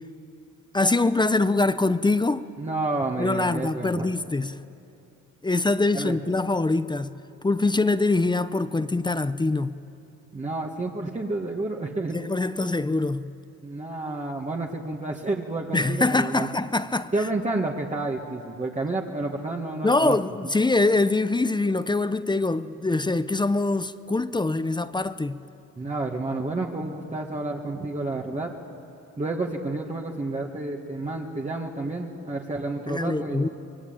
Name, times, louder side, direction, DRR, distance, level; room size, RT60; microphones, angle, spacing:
voice 1, 0.7-2.4 3.2-4.6 5.4-9.8 12.1-13.3 15.7-17.1 19.8-25.4 32.9-33.5, left 2 dB, 15° left, 0.7 m, -24 dB
voice 2, 2.6-4.1 5.9-6.2 10.3-12.2 13.6-16.5 17.1-20.2 25.8-28.6 29.2-33.5, right 2 dB, 25° right, 1.9 m, -30 dB
24.5 x 22.5 x 9.0 m
cardioid pair, 90°, 30 cm